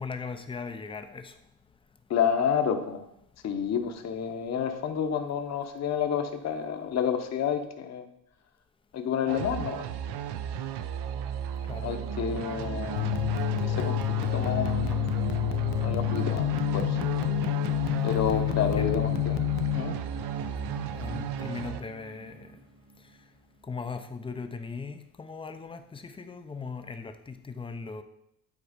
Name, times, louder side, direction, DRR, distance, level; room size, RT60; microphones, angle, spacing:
voice 1, 0.0-1.3 11.7-11.9 18.3-19.7 21.0-22.6 23.6-28.0, left 4 dB, 15° left, 8 dB, 0.4 m, -39 dB
voice 2, 2.1-3.0 3.4-8.1 8.9-9.8 11.8-13.2 13.6-14.0 14.2-15.0 15.8-17.0 18.0-19.5 19.7-20.0, left 8 dB, 40° left, 6 dB, 0.8 m, -29 dB
sound 1, 9.3-21.8, right 9 dB, 90° right, 0.7 m, -35 dB
sound 2, 11.7-23.3, right 3 dB, 65° right, 2.5 m, -39 dB
sound 3, 13.0-19.8, left 16 dB, 70° left, 0.6 m, -28 dB
9.5 x 4.4 x 5.1 m, 0.77 s
cardioid pair, 170°, 39 cm